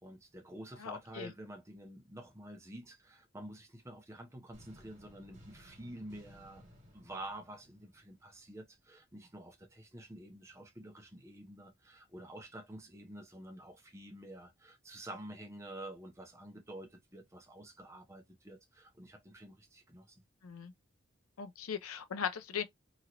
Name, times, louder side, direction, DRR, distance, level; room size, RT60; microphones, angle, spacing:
voice 1, 0.0-6.7 6.9-20.2, right 1 dB, 15° right, 0.6 m, -49 dB
voice 2, 0.8-1.3 20.4-20.7 21.4-22.6, left 7 dB, 85° left, 0.5 m, -39 dB
sound 1, 4.5-8.5, equal, 35° right, 1.5 m, -58 dB
2.9 x 2.9 x 2.5 m
head